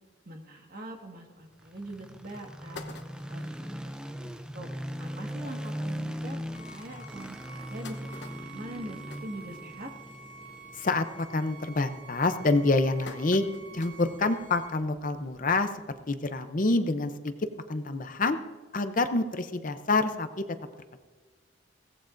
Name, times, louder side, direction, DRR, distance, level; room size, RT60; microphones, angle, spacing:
voice 1, 0.2-2.8 3.3-3.9 4.2-4.7 5.0-6.4 6.7-8.1 8.4-9.9, right 1 dB, 45° right, 2 dB, 1.7 m, -43 dB
sound 1, 1.5-15.6, equal, 5° right, 0.5 m, -41 dB
sound 2, 2.7-3.6 4.1-4.2 4.5-4.6 4.9-5.1 5.8-5.9 6.4-6.5 7.3-10.1 10.5-10.8 11.2-11.6 12.2-14.2 14.6-14.7 15.9-16.0, left 4 dB, 60° left, 0.9 m, -47 dB
Bowed string instrument, 6.5-14.8, right 4 dB, 65° right, 2.9 m, -49 dB
voice 2, 10.7-13.4 13.7-15.7 16.1-17.3 17.7-18.4 18.7-20.4, left 3 dB, 40° left, 9 dB, 0.6 m, -27 dB
22.5 x 17.0 x 2.6 m, 1.3 s
head